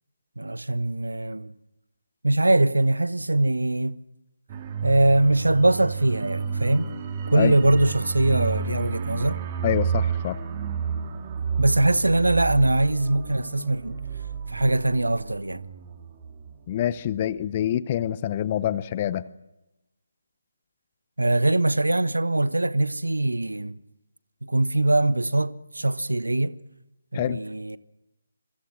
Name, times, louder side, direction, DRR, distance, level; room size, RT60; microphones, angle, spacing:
voice 1, 0.4-1.5 2.2-4.0 4.8-6.9 7.3-9.4 11.6-14.0 14.5-15.7 21.2-23.8 24.4-26.6 27.1-27.8, right 2 dB, 70° right, 1.1 m, -22 dB
sound 1, 4.5-16.9 17.2-17.3, right 6 dB, 25° right, 2.1 m, -31 dB
voice 2, 9.6-10.4 16.7-19.3 27.1-27.4, left 11 dB, 25° left, 0.7 m, -26 dB
27.5 x 23.5 x 6.2 m
figure-of-eight pair, 150°, 0 cm